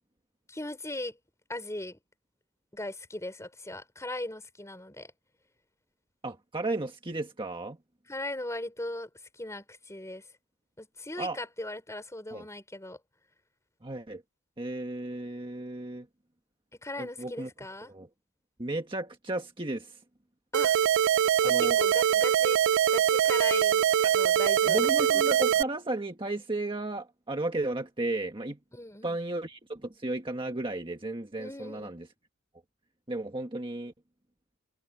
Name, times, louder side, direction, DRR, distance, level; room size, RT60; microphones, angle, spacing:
voice 1, 0.5-1.2 1.5-2.0 2.7-5.1 8.1-10.3 10.8-13.0 16.8-17.9 20.5-20.8 21.4-22.6 22.9-23.9 24.1-24.9 28.7-29.2 31.4-31.9, left 1 dB, 15° left, 5.1 m, -38 dB
voice 2, 6.2-7.8 11.2-11.4 12.3-12.4 13.8-14.2 14.6-16.1 17.0-17.5 17.9-18.1 18.6-20.0 21.4-21.8 24.0-24.1 24.7-28.6 29.0-32.1 33.1-33.9, right 2 dB, 25° right, 1.5 m, -34 dB
sound 1, 20.5-25.6, right 9 dB, 60° right, 0.3 m, -23 dB
head